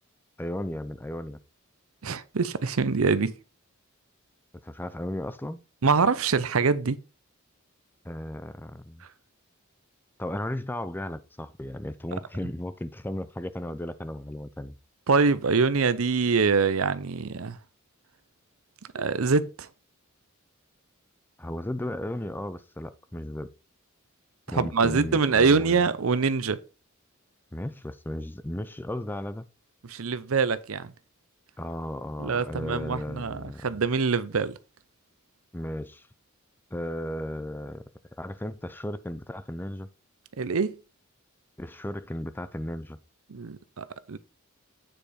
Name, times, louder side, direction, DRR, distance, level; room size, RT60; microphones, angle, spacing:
voice 1, 0.4-1.4 4.6-5.6 8.0-9.0 10.2-14.8 21.4-23.5 24.5-25.8 27.5-29.5 31.6-33.8 35.5-36.1 36.7-37.8 38.2-39.9 41.6-43.0, left 1 dB, 10° left, 0.5 m, -35 dB
voice 2, 2.0-3.3 5.8-7.0 15.1-17.6 18.9-19.7 24.5-26.6 29.9-30.9 32.2-34.6 40.4-40.8 43.3-44.2, right 4 dB, 75° right, 0.7 m, -24 dB
9.1 x 5.0 x 4.3 m
head